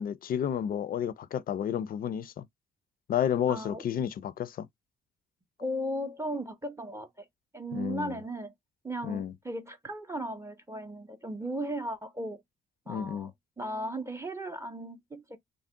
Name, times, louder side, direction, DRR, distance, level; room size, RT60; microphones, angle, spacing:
voice 1, 0.0-2.4 3.1-4.7 7.7-8.2 9.0-9.3 12.9-13.3, left 9 dB, 45° left, 0.4 m, -31 dB
voice 2, 3.5-3.8 5.6-7.3 7.5-8.5 8.8-12.4 12.9-13.3 13.6-15.4, right 1 dB, 15° right, 0.5 m, -36 dB
2.6 x 2.1 x 3.5 m
cardioid pair, 90°, 20 cm